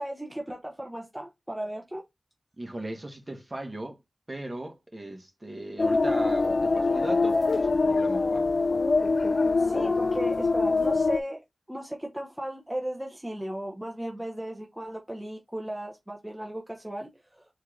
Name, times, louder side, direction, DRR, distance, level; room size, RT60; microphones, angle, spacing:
voice 1, 0.0-2.0 9.6-11.4 11.7-17.1, right 1 dB, 10° right, 0.9 m, -36 dB
voice 2, 2.6-4.0 4.3-8.5, right 1 dB, 30° right, 1.3 m, -37 dB
sound 1, 5.8-11.2, left 3 dB, 65° left, 0.3 m, -24 dB
4.3 x 3.3 x 3.8 m
wide cardioid pair, 75°, 0 cm